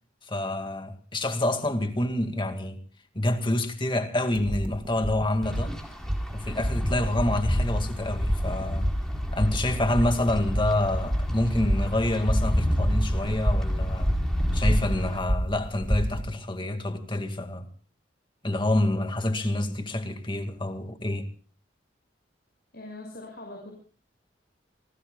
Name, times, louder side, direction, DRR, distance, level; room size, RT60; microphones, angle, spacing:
voice 1, 0.2-2.8 3.1-5.8 6.3-8.9 9.3-14.1 14.5-17.7 18.4-21.3, left 1 dB, 25° left, 2.0 m, -27 dB
sound 1, 4.3-16.2, equal, 30° right, 2.2 m, -30 dB
Wind, 5.4-15.2, equal, 5° left, 4.3 m, -29 dB
voice 2, 22.7-23.7, left 2 dB, 60° left, 6.1 m, -41 dB
29.5 x 19.5 x 2.3 m
head